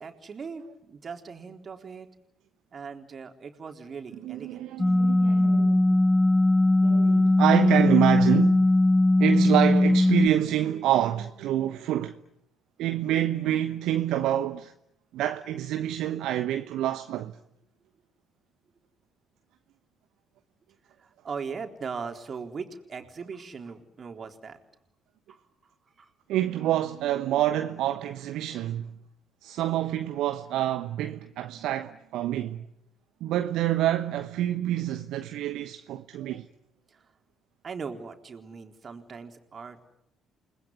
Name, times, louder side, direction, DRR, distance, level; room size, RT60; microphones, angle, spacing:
voice 1, 0.0-2.1 2.7-4.7 21.0-24.6 25.3-25.4 26.0-26.1 36.9-37.1 37.6-39.8, right 5 dB, 40° right, 3.9 m, -39 dB
voice 2, 4.2-6.0 6.8-8.7 9.2-12.2 12.8-14.7 15.1-17.4 26.3-28.9 29.4-32.7 33.2-36.5, right 12 dB, 60° right, 1.1 m, -27 dB
sound 1, 4.8-10.3, left 1 dB, 15° left, 2.0 m, -20 dB
30.0 x 20.0 x 9.6 m
figure-of-eight pair, 45°, 0 cm